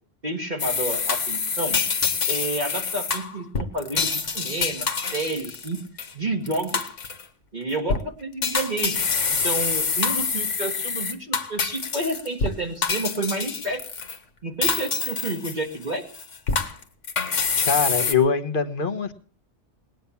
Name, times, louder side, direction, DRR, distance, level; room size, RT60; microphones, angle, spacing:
voice 1, 0.2-1.8 2.3-4.1 4.3-5.9 6.1-6.8 7.5-9.0 9.4-13.8 14.4-16.1, right 2 dB, 40° right, 0 dB, 1.6 m, -30 dB
sound 1, 0.6-6.1 6.5-7.2 7.7-8.0 8.4-12.5 12.8-14.2 14.6-15.8 16.1-18.1, left 5 dB, 90° left, 1.8 m, -26 dB
voice 2, 17.6-19.1, left 5 dB, 45° left, 8 dB, 1.4 m, -23 dB
19.5 x 9.2 x 7.1 m, 0.42 s
omnidirectional pair, 1.2 m